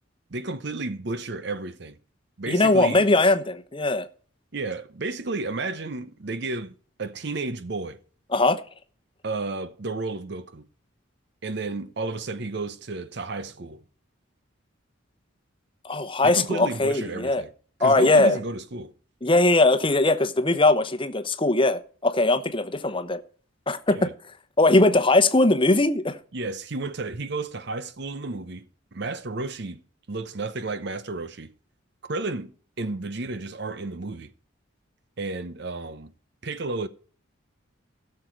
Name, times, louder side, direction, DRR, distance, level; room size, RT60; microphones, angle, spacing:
voice 1, 0.3-2.0 2.4-3.0 4.5-8.0 9.2-10.6 11.4-13.8 16.2-17.5 17.8-18.9 23.9-24.1 26.3-28.7 28.9-29.8 30.1-31.5 32.0-32.5 32.8-34.3 35.2-36.1 36.4-36.9, right 3 dB, 55° right, 0.8 m, -32 dB
voice 2, 2.5-4.1 8.3-8.6 15.8-17.4 17.8-18.4 19.2-23.2 23.7-24.1 24.6-26.2, left 2 dB, 25° left, 0.9 m, -20 dB
16.5 x 6.7 x 4.5 m
head